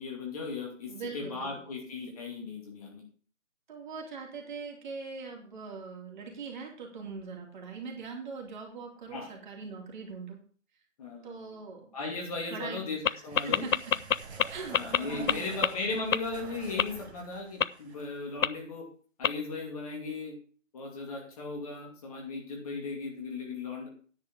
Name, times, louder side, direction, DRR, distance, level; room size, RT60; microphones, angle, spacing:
voice 1, 0.0-3.0 9.1-9.3 11.0-11.6 11.9-13.7 14.7-18.9 19.2-20.3 20.7-23.9, left 3 dB, 30° left, 0 dB, 2.4 m, -37 dB
voice 2, 0.9-1.5 3.7-10.4 11.2-11.9 12.5-12.8 13.0-13.2 13.4-13.9 14.4-15.6, right 5 dB, 35° right, 1 dB, 3.0 m, -41 dB
sound 1, 12.9-18.5, right 4 dB, 55° right, 2.2 m, -47 dB
sound 2, 13.1-13.2 13.4-14.4 14.7-15.0 15.3-15.4 15.6-15.7 16.1-16.2 16.8-16.9 17.6-17.7 18.4-18.5 19.2-19.3, left 8 dB, 85° left, 0.6 m, -23 dB
10.0 x 4.8 x 8.1 m, 0.42 s
figure-of-eight pair, 155°, 39 cm